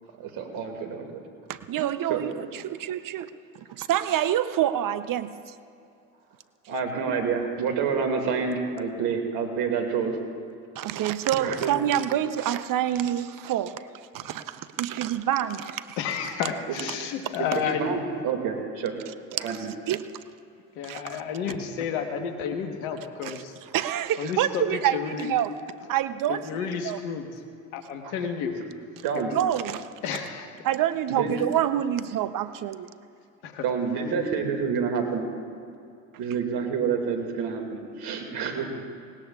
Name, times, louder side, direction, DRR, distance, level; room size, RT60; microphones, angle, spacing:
voice 1, 0.2-1.2 2.1-2.5 6.7-10.2 11.4-11.8 17.5-19.0 19.4-19.7 28.0-28.3 29.0-29.3 31.1-31.4 33.6-35.3 36.2-38.8, right 5 dB, 70° right, 4 dB, 2.3 m, -28 dB
voice 2, 1.5-5.5 10.7-13.8 14.1-16.0 17.0-17.1 19.3-19.6 19.9-20.0 20.8-21.2 23.2-25.5 25.9-26.5 26.8-27.0 29.3-29.9 30.6-32.9, right 11 dB, 50° right, 13 dB, 0.7 m, -27 dB
voice 3, 16.0-17.9 20.7-23.5 24.2-24.6 24.9-25.3 26.3-27.3 27.7-28.6 30.0-30.5 33.4-33.7, left 7 dB, 80° left, 6 dB, 1.3 m, -31 dB
19.0 x 18.5 x 2.4 m, 2.5 s
hypercardioid pair, 60°, 41 cm